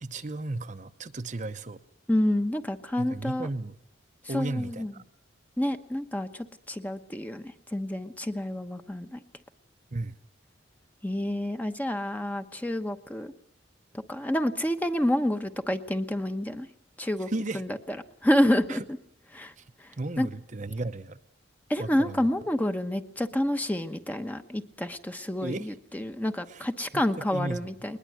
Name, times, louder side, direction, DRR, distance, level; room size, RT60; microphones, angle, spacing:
voice 1, 0.0-1.8 3.0-3.7 4.3-5.0 9.9-10.2 17.3-17.6 18.7-18.8 19.6-19.7 20.0-21.2 21.8-22.3 25.4-25.8 26.5-26.6 26.9-27.0 27.3-27.6, right 2 dB, 40° right, 9 dB, 0.8 m, -34 dB
voice 2, 2.1-3.5 4.3-4.9 5.6-9.2 11.0-13.3 13.9-16.7 17.0-17.3 17.5-18.0 18.2-18.8 19.3-19.5 19.8-20.3 21.7-28.0, left 1 dB, 10° left, 8 dB, 1.0 m, -28 dB
21.0 x 20.5 x 7.8 m, 0.71 s
head